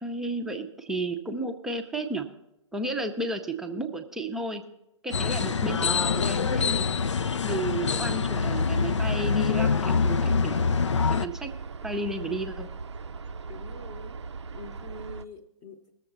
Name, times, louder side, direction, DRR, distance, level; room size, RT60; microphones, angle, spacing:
voice 1, 0.0-2.3 2.7-4.6 5.0-6.9 7.4-10.6 11.2-11.5 11.8-12.7, right 2 dB, 5° right, 5 dB, 0.6 m, -32 dB
sound 1, 5.1-11.3, left 5 dB, 65° left, 0.4 m, -25 dB
sound 2, 7.9-15.2, right 4 dB, 60° right, 0.5 m, -40 dB
voice 2, 13.5-14.2 14.5-15.9, left 2 dB, 20° left, 8 dB, 0.9 m, -44 dB
19.5 x 7.1 x 3.9 m, 0.87 s
figure-of-eight pair, 125°, 16 cm